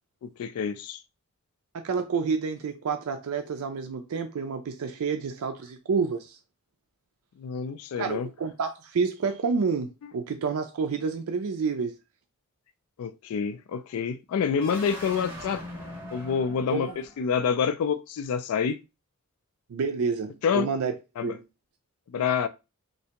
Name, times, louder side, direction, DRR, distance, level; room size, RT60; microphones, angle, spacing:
voice 1, 0.2-1.0 7.4-8.3 13.0-15.6 16.1-18.8 20.4-20.7 21.2-21.3 22.1-22.5, left 6 dB, 90° left, 0.3 m, -27 dB
voice 2, 1.7-6.4 8.0-12.0 16.7-17.0 19.7-21.0 21.2-21.4, right 5 dB, 80° right, 0.4 m, -29 dB
sound 1, 14.5-17.5, left 1 dB, 10° right, 1.2 m, -41 dB
3.2 x 2.6 x 2.9 m
head